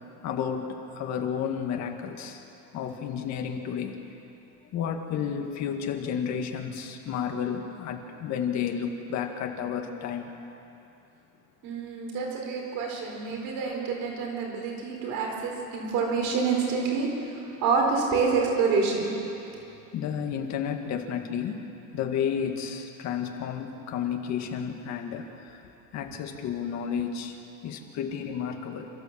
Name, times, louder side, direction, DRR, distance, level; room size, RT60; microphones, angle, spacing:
voice 1, 0.2-2.4 2.7-4.0 4.7-10.3 19.4-19.6 19.9-21.6 21.9-27.4 27.6-28.9, left 7 dB, 55° left, 3 dB, 1.9 m, -32 dB
voice 2, 11.6-19.1, right 4 dB, 90° right, 0 dB, 4.5 m, -27 dB
28.0 x 14.0 x 7.5 m, 2.9 s
cardioid pair, 180°, 34 cm